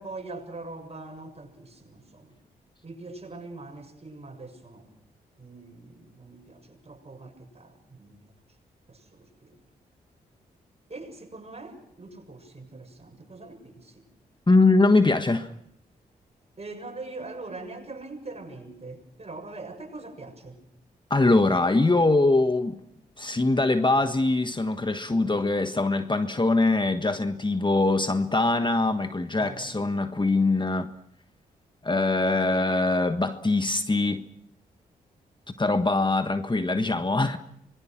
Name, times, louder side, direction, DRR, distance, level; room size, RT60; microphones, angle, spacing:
voice 1, 0.0-2.4 2.8-4.9 5.4-8.2 8.9-9.6 10.9-14.1 16.6-20.6 29.4-29.7, right 3 dB, 35° right, 7.2 m, -42 dB
voice 2, 14.5-15.5 21.1-22.8 23.2-30.9 31.8-34.2 35.6-37.4, left 2 dB, 25° left, 1.5 m, -23 dB
25.5 x 22.0 x 6.0 m
supercardioid pair, 40°, 18 cm